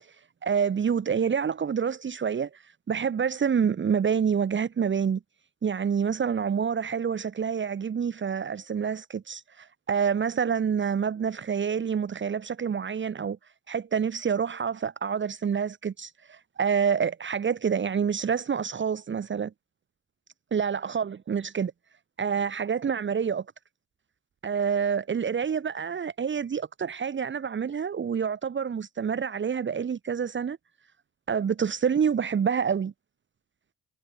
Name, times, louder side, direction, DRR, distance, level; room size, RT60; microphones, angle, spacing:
voice 1, 0.4-5.2 5.6-13.4 13.7-19.5 20.5-21.7 22.2-23.4 24.4-30.6 31.3-32.9, right 7 dB, 40° right, 1.4 m, -27 dB
cardioid pair, 90°, 30 cm